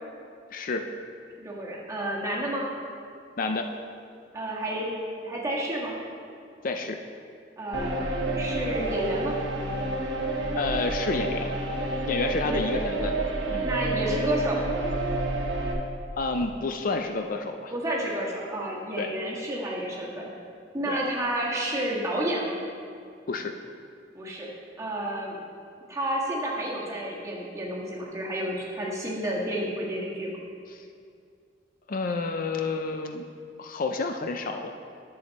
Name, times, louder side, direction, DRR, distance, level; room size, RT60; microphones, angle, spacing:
voice 1, 0.5-0.9 3.4-3.7 6.6-7.0 10.6-11.5 12.1-13.1 13.5-13.7 16.2-17.7 19.0-19.1 20.9-21.0 23.3-23.5 30.7-30.8 31.9-33.2 33.6-34.7, left 3 dB, 50° left, 5 dB, 0.5 m, -29 dB
voice 2, 1.4-2.7 4.3-4.9 5.2-5.9 7.6-8.0 8.3-9.3 12.4-12.7 13.6-14.6 17.7-20.3 20.7-22.6 24.1-24.5 24.8-25.4 25.9-30.3, right 1 dB, 15° right, -4 dB, 1.5 m, -30 dB
sound 1, 7.7-15.7, right 2 dB, 75° right, 1.2 m, -29 dB
10.5 x 7.0 x 4.1 m, 2.3 s
head